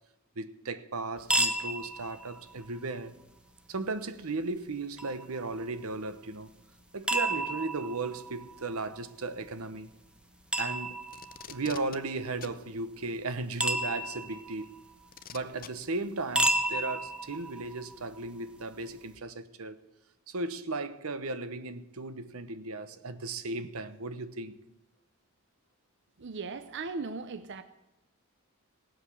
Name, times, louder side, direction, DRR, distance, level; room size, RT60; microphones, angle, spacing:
voice 1, 0.4-3.1 3.7-6.5 6.9-9.9 10.6-11.0 11.5-14.7 15.3-19.8 20.3-24.6, right 3 dB, 85° right, 1.0 m, -36 dB
sound 1, 1.2-19.1, right 1 dB, 5° right, 1.0 m, -35 dB
Packing tape duct tape, 11.1-12.0 12.4-12.6 13.9-14.0 15.1-15.7 16.8-16.9, left 9 dB, 40° left, 0.6 m, -45 dB
voice 2, 26.2-27.6, right 4 dB, 55° right, 0.6 m, -37 dB
18.0 x 7.8 x 7.0 m
head